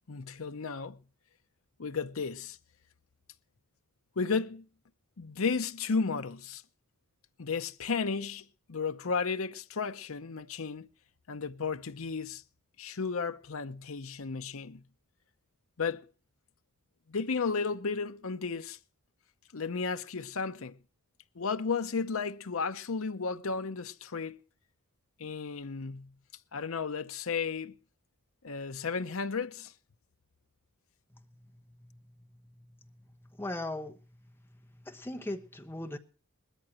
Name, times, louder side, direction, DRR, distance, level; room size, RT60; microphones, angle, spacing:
voice 1, 0.1-1.0 1.8-2.6 4.2-4.7 5.2-6.6 7.4-10.9 11.3-12.4 12.8-14.8 15.8-16.0 17.1-18.8 19.5-20.8 21.3-24.4 25.2-26.1 26.5-27.7 28.4-29.7, left 5 dB, 65° left, 0.7 m, -33 dB
voice 2, 33.3-34.0 34.8-36.0, left 1 dB, 10° left, 1.1 m, -37 dB
20.5 x 13.5 x 2.9 m
head